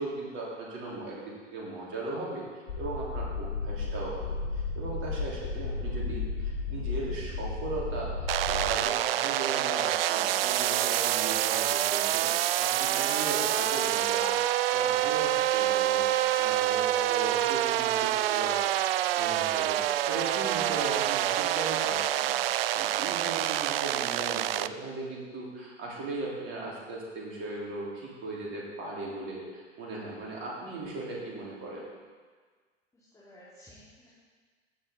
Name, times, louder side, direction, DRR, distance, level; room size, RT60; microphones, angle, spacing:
voice 1, 0.0-2.4 2.8-4.2 4.8-14.3 14.7-16.1 16.4-18.5 18.8-19.8 20.1-22.4 22.7-31.8, right 2 dB, 35° right, -4 dB, 3.7 m, -37 dB
sound 1, 2.7-8.8, left 3 dB, 65° left, 3.0 m, -33 dB
sound 2, 8.3-24.7, right 13 dB, 55° right, 0.4 m, -27 dB
voice 2, 12.9-13.3 32.9-34.1, left 1 dB, 10° left, -9 dB, 2.7 m, -49 dB
15.5 x 7.3 x 3.9 m, 1.5 s
figure-of-eight pair, 105°, 37 cm